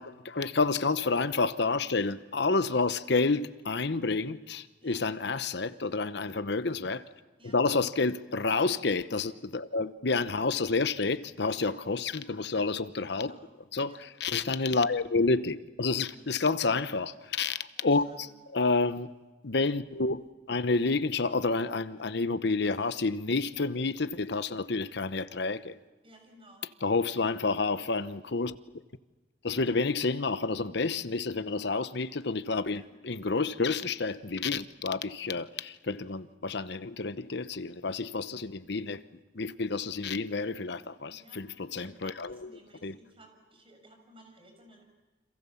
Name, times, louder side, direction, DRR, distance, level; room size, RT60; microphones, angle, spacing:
voice 1, 0.0-7.0 7.4-13.3 13.7-18.3 18.5-19.1 19.4-25.7 26.8-28.6 29.4-39.0 39.3-42.4 42.8-42.9, left 3 dB, 65° left, 0.9 m, -29 dB
voice 2, 13.1-13.6 13.9-14.0 16.1-16.3 17.7-18.3 26.0-26.7 32.7-32.9 41.1-44.8, right 1 dB, 30° right, 6.9 m, -56 dB
29.5 x 27.0 x 7.2 m
head